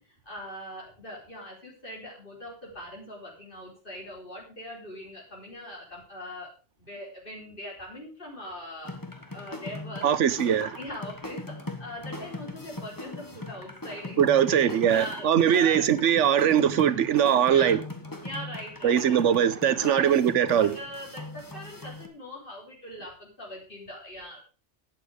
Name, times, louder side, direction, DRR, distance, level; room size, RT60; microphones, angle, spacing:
voice 1, 0.0-6.5 6.8-8.9 9.3-10.2 10.6-15.9 17.5-17.8 18.2-19.2 19.8-20.2 20.6-24.4, left 1 dB, 45° left, 4.2 m, -41 dB
sound 1, 8.8-22.1, left 2 dB, 15° left, 1.5 m, -40 dB
voice 2, 10.0-10.7 14.2-17.8 18.8-20.8, right 9 dB, 85° right, 1.2 m, -21 dB
12.0 x 8.9 x 4.9 m
omnidirectional pair, 1.2 m